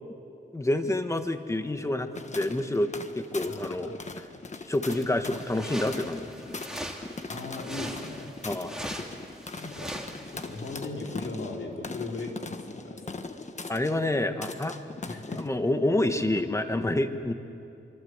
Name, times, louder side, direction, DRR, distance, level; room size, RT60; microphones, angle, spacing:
voice 1, 0.5-4.3 4.7-6.6 8.4-8.9 13.7-14.8 15.3-17.3, left 1 dB, 15° left, 7 dB, 1.3 m, -28 dB
sound 1, 2.2-15.5, left 3 dB, 35° left, 1.3 m, -40 dB
voice 2, 3.5-4.0 4.3-4.4 7.3-8.3 9.6-9.9 10.2-13.0 15.1-15.4, left 2 dB, 80° left, 0 dB, 4.0 m, -38 dB
sound 2, 4.9-10.7, right 1 dB, 5° right, 2.3 m, -41 dB
26.5 x 24.5 x 8.0 m, 2.7 s
wide cardioid pair, 155°, 20 cm